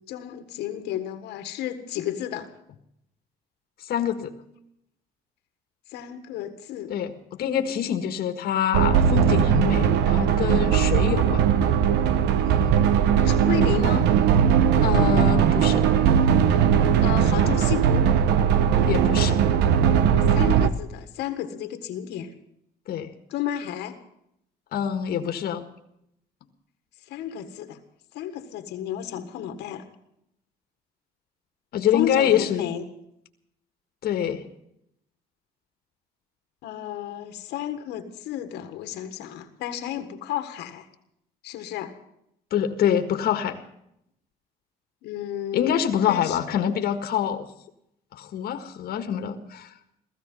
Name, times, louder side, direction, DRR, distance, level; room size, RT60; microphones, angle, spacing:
voice 1, 0.1-2.5 5.9-6.9 13.2-14.1 17.0-18.1 20.3-22.3 23.3-24.0 27.1-27.8 28.1-29.8 31.9-32.8 36.6-40.9 41.4-41.9 45.0-46.4, left 10 dB, 85° left, 8 dB, 1.7 m, -32 dB
voice 2, 3.9-4.3 6.9-11.4 14.8-15.9 18.9-19.4 22.9-23.1 24.7-25.6 31.7-32.6 34.0-34.4 42.5-43.6 45.5-47.4 48.1-49.7, left 9 dB, 65° left, 7 dB, 1.6 m, -25 dB
sound 1, 8.7-20.7, right 8 dB, 85° right, 1.1 m, -19 dB
17.0 x 15.0 x 5.5 m, 0.76 s
cardioid pair, 110°, 17 cm